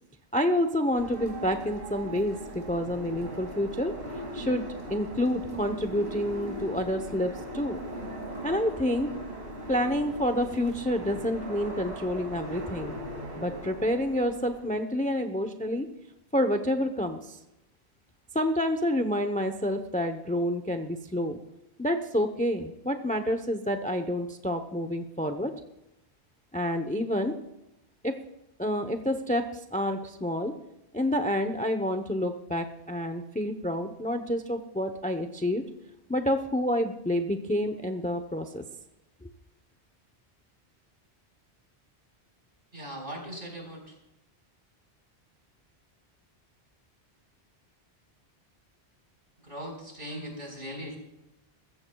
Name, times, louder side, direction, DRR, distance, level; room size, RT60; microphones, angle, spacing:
voice 1, 0.3-3.9 4.3-4.6 4.9-7.8 8.4-9.1 9.7-13.0 13.4-15.9 16.3-17.4 18.3-21.4 21.8-25.5 26.5-27.3 28.0-28.1 28.6-29.4 29.7-30.5 30.9-35.6 36.1-38.6 39.2-39.3, left 1 dB, 10° left, 7 dB, 0.7 m, -28 dB
sound 1, 0.9-14.7, right 1 dB, 70° right, 3.0 m, -39 dB
voice 2, 42.7-44.0 49.4-51.0, equal, 55° right, 0 dB, 4.9 m, -39 dB
21.5 x 15.0 x 2.3 m, 0.91 s
omnidirectional pair, 1.1 m